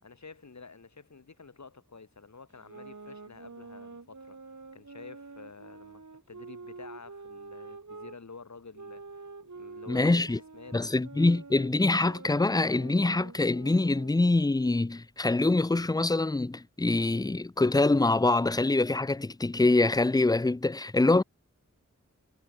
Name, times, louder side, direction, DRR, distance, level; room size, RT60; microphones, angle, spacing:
voice 1, 0.0-4.4 4.7-9.3 9.5-10.8, left 4 dB, 65° left, 1.5 m, -49 dB
sound 1, 2.5-8.2 8.7-14.3, right 4 dB, 70° right, 2.5 m, -47 dB
voice 2, 9.9-10.4 10.7-21.2, left 2 dB, 15° left, 0.4 m, -25 dB
wide cardioid pair, 50°, 30 cm